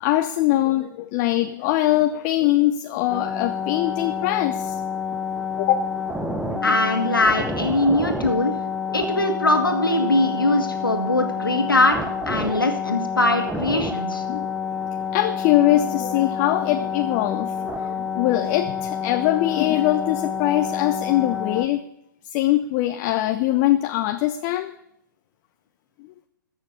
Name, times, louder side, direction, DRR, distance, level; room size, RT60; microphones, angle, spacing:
voice 1, 0.0-4.8 5.6-5.9 6.5-6.8 8.9-9.0 14.3-14.5 15.1-21.8 22.3-24.7, left 14 dB, 30° left, 8 dB, 0.7 m, -22 dB
sound 1, 3.1-21.7, left 5 dB, 5° right, 1.0 m, -28 dB
voice 2, 6.6-8.5 8.9-12.0 12.3-14.2, left 2 dB, 85° left, 4 dB, 1.9 m, -21 dB
14.5 x 6.5 x 8.2 m, 0.79 s
figure-of-eight pair, 120°, 11 cm